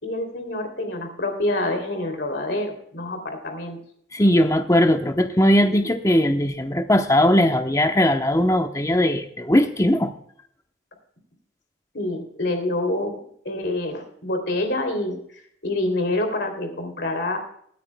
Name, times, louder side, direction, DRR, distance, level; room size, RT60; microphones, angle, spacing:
voice 1, 0.0-3.8 11.9-13.2 13.4-15.2 15.6-17.4, left 1 dB, 60° left, 5 dB, 2.8 m, -26 dB
voice 2, 4.1-10.1, left 1 dB, 15° left, 7 dB, 0.8 m, -19 dB
22.5 x 9.6 x 2.2 m, 0.65 s
head